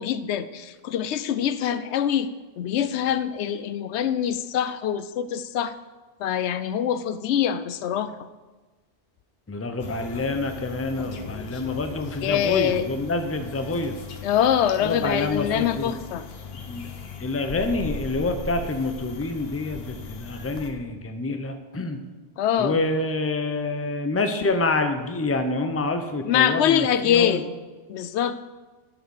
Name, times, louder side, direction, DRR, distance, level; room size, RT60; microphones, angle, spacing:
voice 1, 0.0-5.8 6.2-8.2 12.2-12.9 14.2-16.3 22.4-22.8 26.3-27.5 27.9-28.4, left 9 dB, 85° left, 13 dB, 0.9 m, -24 dB
voice 2, 9.5-14.0 14.8-15.9 16.5-16.9 17.2-22.0 22.6-27.4, left 2 dB, 15° left, 7 dB, 0.6 m, -27 dB
sound 1, 9.8-20.7, left 5 dB, 65° left, 1.1 m, -38 dB
9.2 x 6.0 x 6.4 m, 1.3 s
omnidirectional pair, 1.1 m